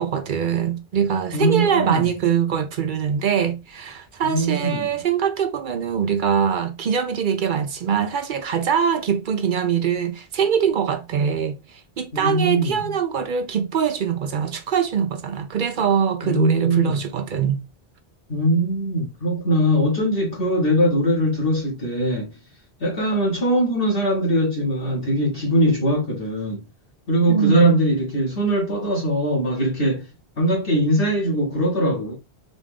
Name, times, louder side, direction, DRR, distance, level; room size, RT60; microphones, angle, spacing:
voice 1, 0.0-17.6 27.3-27.8, right 7 dB, 60° right, 0.7 m, -23 dB
voice 2, 1.3-2.1 4.2-4.9 12.1-12.9 16.2-17.0 18.3-22.3 22.8-26.6 27.1-30.1 30.4-32.1, equal, 65° left, 1.5 m, -21 dB
4.0 x 2.4 x 3.4 m
omnidirectional pair, 1.0 m